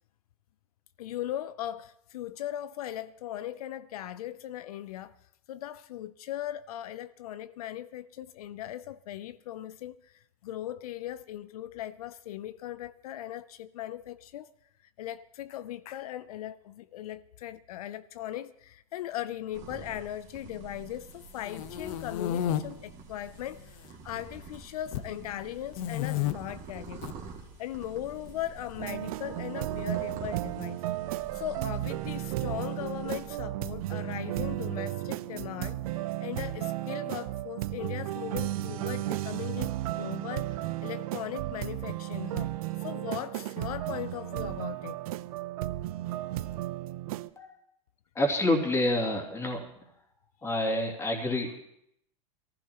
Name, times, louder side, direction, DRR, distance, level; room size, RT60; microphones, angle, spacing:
voice 1, 1.0-5.2 5.5-14.5 15.0-27.3 27.6-30.8 31.3-42.5 42.8-45.0, left 12 dB, 85° left, 0.5 m, -39 dB
sound 1, 19.5-33.4, right 5 dB, 40° right, 2.2 m, -48 dB
sound 2, 21.2-22.6 23.3-23.9 24.2-25.1 25.7-26.3 26.9-27.1 28.3-29.2, left 11 dB, 60° left, 0.9 m, -32 dB
sound 3, 28.8-47.3, right 15 dB, 75° right, 0.6 m, -34 dB
voice 2, 48.1-49.7 50.4-51.6, left 1 dB, 15° left, 2.6 m, -28 dB
22.5 x 15.0 x 3.0 m
supercardioid pair, 130°, 19 cm